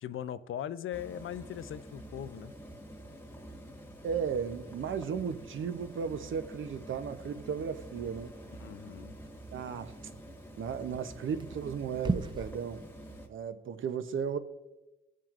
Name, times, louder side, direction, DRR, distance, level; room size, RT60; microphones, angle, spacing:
voice 1, 0.0-2.5 8.6-9.2, left 10 dB, 75° left, 0.5 m, -39 dB
sound 1, 0.9-13.3, right 1 dB, 10° left, 1.3 m, -48 dB
voice 2, 4.0-8.3 9.5-9.9 10.6-12.8 13.3-14.4, right 7 dB, 70° right, 0.7 m, -35 dB
sound 2, 5.1-12.5, right 3 dB, 20° right, 0.6 m, -42 dB
15.5 x 7.5 x 2.5 m
cardioid pair, 105°, 21 cm